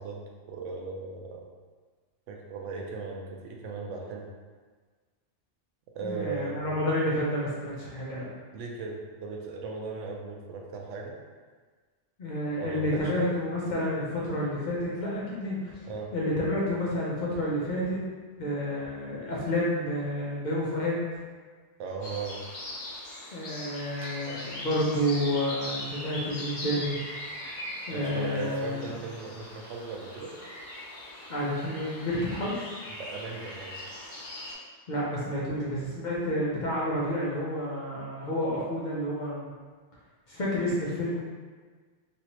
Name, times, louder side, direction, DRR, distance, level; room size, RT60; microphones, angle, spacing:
voice 1, 0.0-1.5 2.3-4.3 5.9-6.7 8.5-11.2 12.6-13.2 15.8-16.1 21.8-22.4 27.9-30.3 32.9-33.8, right 4 dB, 90° right, 0 dB, 0.9 m, -38 dB
voice 2, 6.0-8.3 12.2-15.7 16.1-18.0 18.4-21.0 23.3-27.0 27.9-28.9 31.3-32.6 34.9-39.5 40.3-41.2, equal, 50° left, -6 dB, 0.6 m, -30 dB
sound 1, 22.0-34.5, left 1 dB, 80° left, 1.2 m, -40 dB
3.1 x 2.7 x 2.9 m, 1.5 s
omnidirectional pair, 1.2 m